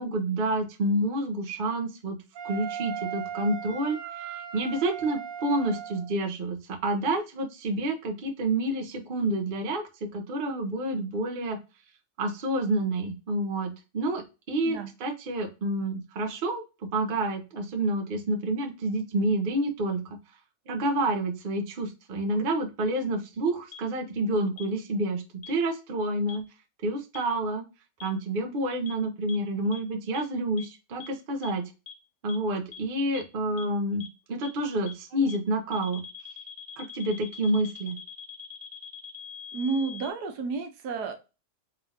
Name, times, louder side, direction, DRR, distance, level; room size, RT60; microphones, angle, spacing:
voice 1, 0.0-2.2 2.4-11.6 12.2-14.2 14.5-20.0 20.7-26.5 26.8-27.6 28.0-31.6 32.2-36.0 36.8-38.0, right 1 dB, 40° right, 4 dB, 0.8 m, -29 dB
Wind instrument woodwind instrument, 2.4-6.1, right 8 dB, 65° right, 1.1 m, -37 dB
sound 1, 23.7-23.8 24.6-24.7 25.4-25.5 26.3-26.4 27.1-27.2 28.0-28.1 28.9-29.0 29.3-29.4 29.7-29.8 30.1-30.2 30.6-30.7 31.0-31.1 31.4-31.5 31.9-32.0 32.3-32.4 32.7-32.8 33.1-33.2 33.6-33.7 34.0-34.1 34.4-34.5 34.9-35.0 35.3-35.4 35.7-40.1, left 7 dB, 40° left, 0.4 m, -42 dB
voice 2, 39.5-41.1, right 4 dB, 80° right, 6 dB, 1.3 m, -31 dB
4.0 x 3.6 x 2.6 m, 0.29 s
omnidirectional pair, 1.7 m